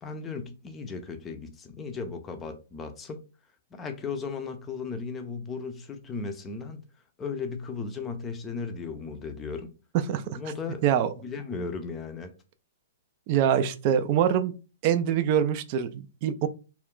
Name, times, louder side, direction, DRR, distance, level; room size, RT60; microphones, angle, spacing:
voice 1, 0.0-3.2 3.7-6.8 7.2-9.7 10.4-10.8 11.2-12.3, left 4 dB, 20° left, 0.5 m, -36 dB
voice 2, 10.1-10.4 10.8-11.1 13.3-14.5 14.8-16.5, right 9 dB, 45° right, 0.3 m, -24 dB
2.3 x 2.2 x 3.6 m
hypercardioid pair, 135°, 0 cm